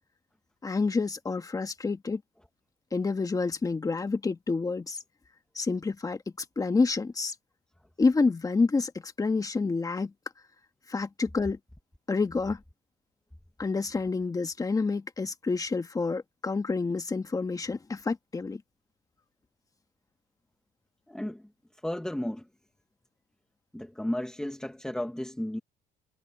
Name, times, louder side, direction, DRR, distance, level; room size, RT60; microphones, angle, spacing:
voice 1, 0.6-2.2 2.9-5.0 5.5-7.3 8.0-10.1 10.9-11.6 12.1-12.6 13.6-18.6, left 4 dB, 20° left, 1.6 m, -28 dB
voice 2, 21.1-21.4 21.8-22.4 23.7-25.6, left 1 dB, 5° left, 1.9 m, -33 dB
cardioid pair, 110°, 17 cm